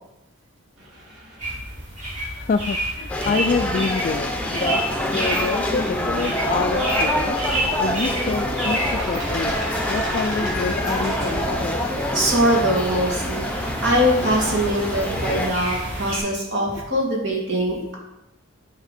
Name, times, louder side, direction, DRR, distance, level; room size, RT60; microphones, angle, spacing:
sound 1, 0.8-12.2, right 1 dB, 80° right, 3.4 m, -41 dB
sound 2, 1.4-16.2, right 1 dB, 35° right, 3.3 m, -30 dB
voice 1, 2.4-4.8 5.1-9.5 9.9-11.8, left 4 dB, 40° left, 5 dB, 0.3 m, -27 dB
sound 3, 3.1-15.5, left 1 dB, 5° left, 0.8 m, -26 dB
voice 2, 12.1-17.9, equal, 60° right, -3 dB, 2.5 m, -22 dB
9.7 x 5.8 x 4.3 m, 0.91 s
head